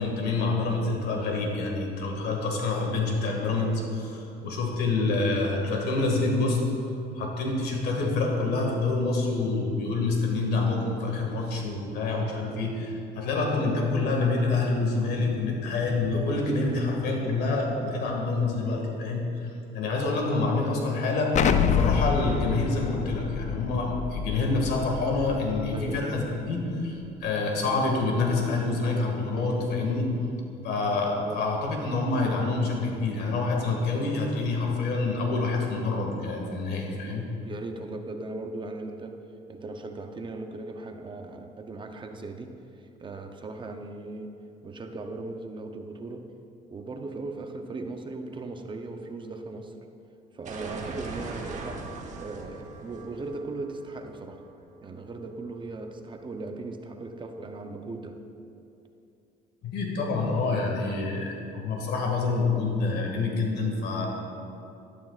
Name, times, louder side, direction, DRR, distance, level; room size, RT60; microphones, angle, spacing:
voice 1, 0.0-6.6 7.2-30.1 30.6-37.3 59.6-64.1, left 3 dB, 75° left, 0 dB, 1.9 m, -27 dB
Explosion, 21.3-26.0, left 7 dB, 45° left, 0.5 m, -27 dB
voice 2, 31.1-31.4 37.4-39.2 39.5-44.4 44.6-46.3 46.7-49.7 50.3-51.9 52.2-54.4 54.8-58.2, right 3 dB, 30° right, 6 dB, 0.6 m, -38 dB
sound 1, 50.4-55.2, right 3 dB, 45° right, 1.1 m, -40 dB
12.0 x 11.5 x 2.4 m, 2.7 s
cardioid pair, 110°, 17 cm